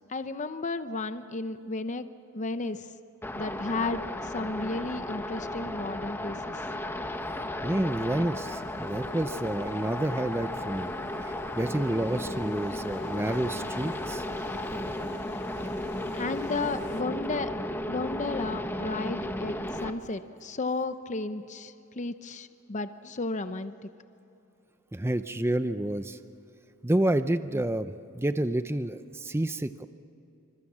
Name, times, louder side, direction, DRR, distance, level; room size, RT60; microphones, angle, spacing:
voice 1, 0.1-2.1 2.3-2.8 3.4-6.4 16.1-17.5 17.9-23.8, left 3 dB, 35° left, 10 dB, 0.7 m, -33 dB
sound 1, 3.2-19.9, left 1 dB, 10° left, 1.3 m, -34 dB
voice 2, 7.6-10.9 11.2-14.2 24.9-26.2 26.8-29.9, right 1 dB, 10° right, 10 dB, 0.6 m, -29 dB
sound 2, 8.5-17.0, left 3 dB, 60° left, 2.0 m, -51 dB
27.5 x 26.0 x 7.3 m, 2.8 s
head